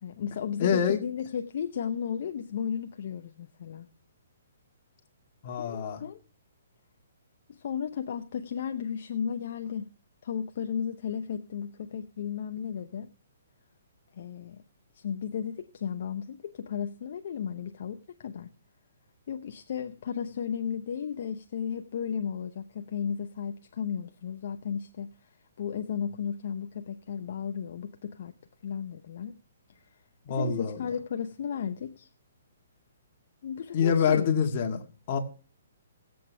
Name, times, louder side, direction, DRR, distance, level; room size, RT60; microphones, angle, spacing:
voice 1, 0.0-3.9 5.6-6.2 7.5-9.9 10.2-13.1 14.1-14.6 14.9-18.5 19.3-25.3 25.6-28.3 28.6-29.4 30.4-32.1 33.4-34.3, left 7 dB, 55° left, 0.6 m, -34 dB
voice 2, 0.5-1.0 5.4-6.0 30.3-30.8 33.7-35.2, left 7 dB, 40° left, 1.8 m, -26 dB
18.5 x 7.9 x 3.4 m
hypercardioid pair, 150°, 0 cm